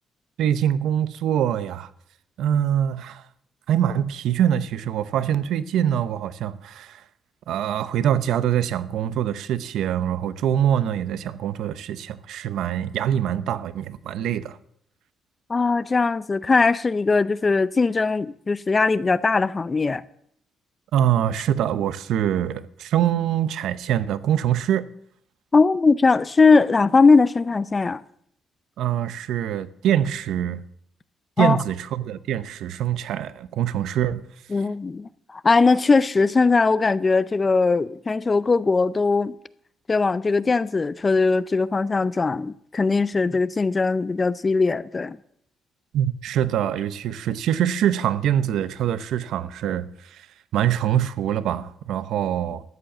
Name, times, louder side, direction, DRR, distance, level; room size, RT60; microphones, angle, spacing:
voice 1, 0.4-1.9 2.4-3.2 3.7-7.0 7.5-14.6 20.9-24.9 28.8-30.6 31.4-34.2 45.9-50.3 50.5-52.6, right 10 dB, 80° right, 0.7 m, -24 dB
voice 2, 15.5-20.0 25.5-28.0 31.4-31.6 34.5-39.3 39.9-45.2, left 4 dB, 30° left, 0.5 m, -20 dB
13.5 x 7.8 x 7.2 m
cardioid pair, 90°, 0 cm